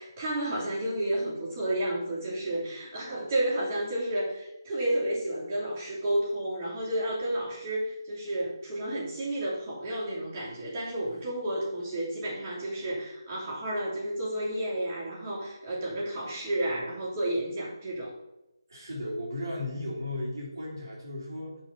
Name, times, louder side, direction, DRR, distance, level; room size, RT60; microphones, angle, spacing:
voice 1, 0.0-18.1, right 1 dB, 25° right, -8 dB, 2.9 m, -31 dB
voice 2, 18.7-21.6, left 1 dB, 55° right, -4 dB, 2.3 m, -35 dB
5.7 x 5.1 x 5.7 m, 0.93 s
figure-of-eight pair, 150°, 2 cm